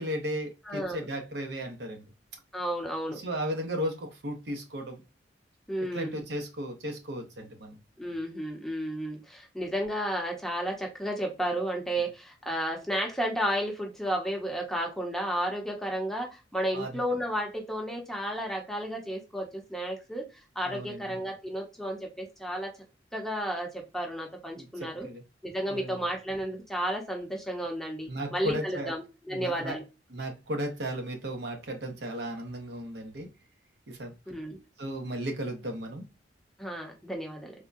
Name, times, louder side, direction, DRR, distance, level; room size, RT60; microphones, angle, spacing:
voice 1, 0.0-2.0 3.2-5.0 5.8-7.8 16.7-16.9 20.6-21.1 24.6-25.2 25.7-26.0 28.1-28.9 29.3-29.8 30.1-33.3 33.9-34.1 34.8-36.0, equal, 65° right, 0.8 m, -35 dB
voice 2, 0.7-1.1 2.5-3.2 5.7-6.2 8.0-20.2 20.6-22.7 23.1-25.1 25.4-29.8 34.3-34.6 36.6-37.5, equal, ahead, 0.7 m, -32 dB
3.6 x 2.1 x 2.4 m
head